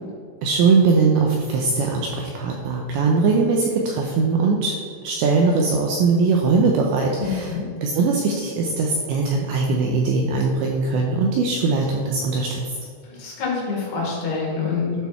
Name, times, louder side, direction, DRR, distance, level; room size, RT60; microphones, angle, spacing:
voice 1, 0.4-7.5 7.8-12.6, right 4 dB, 80° right, 0 dB, 2.6 m, -20 dB
voice 2, 13.1-15.1, left 4 dB, 60° left, -5 dB, 4.0 m, -26 dB
12.5 x 6.2 x 4.4 m, 2.3 s
omnidirectional pair, 5.9 m